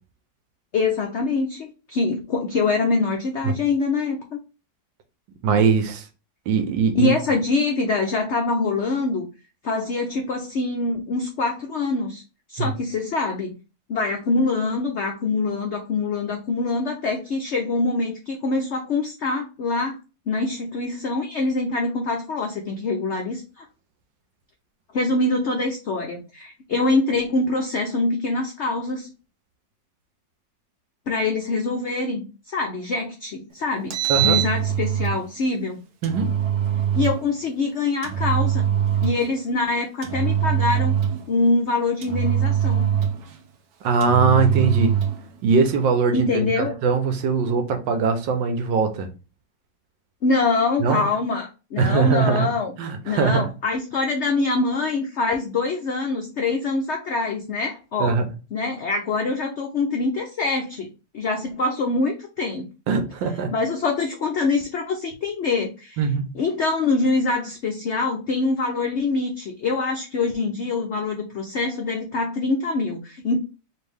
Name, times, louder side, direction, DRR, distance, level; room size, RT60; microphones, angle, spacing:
voice 1, 0.7-4.4 6.9-9.3 9.6-12.2 12.5-13.6 13.9-20.0 20.3-23.6 24.9-29.1 31.1-35.8 36.9-38.7 39.0-40.9 41.3-42.9 46.1-46.7 50.2-52.7 53.0-58.2 58.5-60.9 61.1-62.7 63.5-66.0 66.3-73.4, left 3 dB, 85° left, 0.6 m, -24 dB
voice 2, 5.4-6.1 6.5-7.1 12.6-12.7 34.1-34.4 36.0-36.3 43.8-44.9 45.4-49.1 50.8-51.1 51.8-52.5 52.8-53.5 58.0-58.3 62.9-63.5 66.0-66.3, right 5 dB, 85° right, 1.4 m, -21 dB
Engine, 33.7-35.2 36.0-37.2 38.0-39.3 40.0-41.3 42.0-43.4 44.0-45.2, right 9 dB, 65° right, 1.2 m, -22 dB
4.5 x 2.6 x 3.4 m
omnidirectional pair, 2.0 m